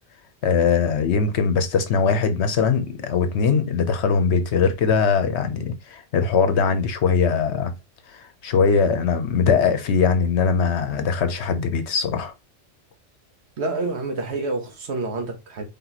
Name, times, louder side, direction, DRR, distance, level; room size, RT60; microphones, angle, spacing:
voice 1, 0.4-7.7 8.1-12.3, left 5 dB, 65° left, 1.0 m, -21 dB
voice 2, 13.6-15.6, right 3 dB, 65° right, 1.2 m, -28 dB
3.4 x 3.0 x 4.0 m
omnidirectional pair, 1.2 m